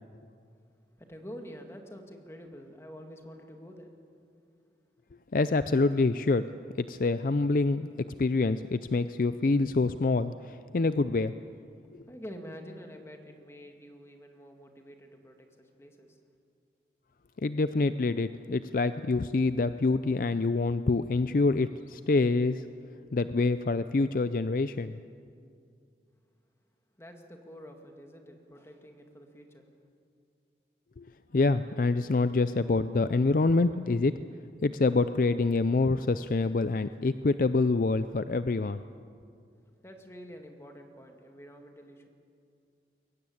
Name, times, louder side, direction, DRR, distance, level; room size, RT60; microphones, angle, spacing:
voice 1, 1.0-4.0 12.1-16.2 27.0-29.6 39.8-42.1, equal, 15° left, 4 dB, 2.1 m, -47 dB
voice 2, 5.3-6.5 6.8-7.9 8.2-11.3 17.4-22.6 23.1-25.0 31.0-31.1 31.3-34.1 34.6-38.8, left 3 dB, 50° left, 13 dB, 0.4 m, -26 dB
22.5 x 17.5 x 8.6 m, 2.4 s
head